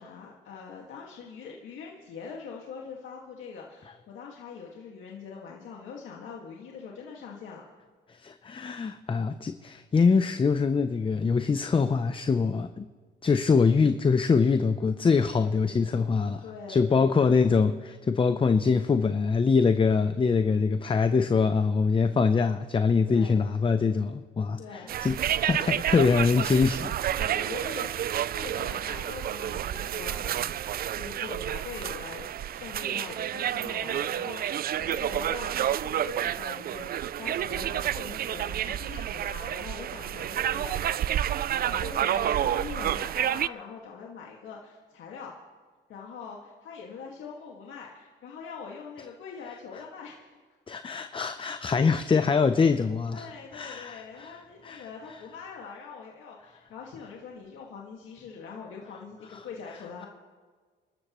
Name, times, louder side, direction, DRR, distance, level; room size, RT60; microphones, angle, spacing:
voice 1, 0.0-7.7 16.4-17.5 23.1-23.5 24.6-25.1 27.1-41.2 41.6-45.3 45.9-50.3 53.1-60.1, left 5 dB, 80° left, -2 dB, 1.9 m, -43 dB
voice 2, 8.2-12.9 13.2-16.4 16.7-25.2 25.4-27.0 50.7-53.3 53.5-54.3 54.6-54.8, left 5 dB, 25° left, 10 dB, 0.6 m, -24 dB
sound 1, 24.9-43.5, right 11 dB, 50° right, 0.4 m, -30 dB
29.0 x 13.0 x 3.1 m, 1.5 s
cardioid pair, 90°, 20 cm